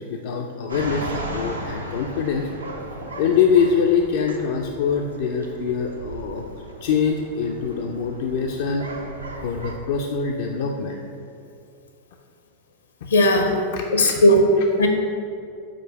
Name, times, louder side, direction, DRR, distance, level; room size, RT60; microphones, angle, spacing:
voice 1, 0.0-2.5 3.2-6.4 6.8-8.8 9.4-11.0 13.0-13.1 13.7-14.1, left 6 dB, 55° left, 2 dB, 0.4 m, -24 dB
sound 1, 0.7-9.7, right 1 dB, 85° right, 0.7 m, -36 dB
voice 2, 13.1-13.6 13.9-14.9, equal, 70° left, 4 dB, 0.8 m, -17 dB
5.1 x 4.5 x 5.8 m, 2.5 s
figure-of-eight pair, 90°, 0 cm